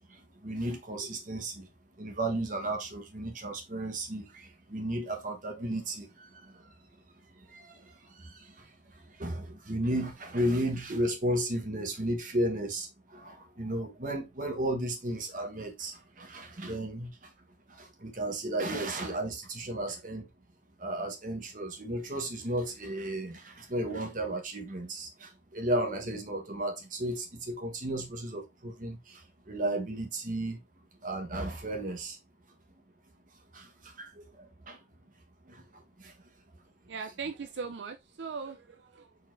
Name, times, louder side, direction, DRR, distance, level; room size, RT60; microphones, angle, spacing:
voice 1, 0.0-1.7 2.0-6.7 7.3-17.3 17.7-20.3 20.8-30.6 31.0-32.2 33.5-34.8 35.5-36.1, right 1 dB, 50° right, 1.1 m, -34 dB
voice 2, 36.9-39.2, right 5 dB, 90° right, 0.5 m, -39 dB
4.3 x 4.1 x 2.5 m
head